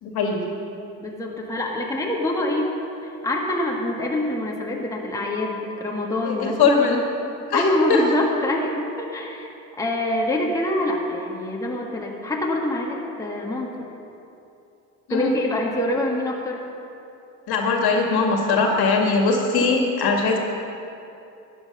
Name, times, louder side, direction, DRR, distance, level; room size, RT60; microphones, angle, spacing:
voice 1, 0.0-0.4 6.2-7.0 7.5-8.0 15.1-15.3 17.5-20.4, left 4 dB, 50° left, 2 dB, 2.3 m, -21 dB
voice 2, 1.0-2.7 3.2-7.0 7.5-9.5 9.8-13.8 15.1-16.6, left 1 dB, 5° left, -2 dB, 1.8 m, -25 dB
13.0 x 10.0 x 5.5 m, 2.8 s
hypercardioid pair, 75°, 47 cm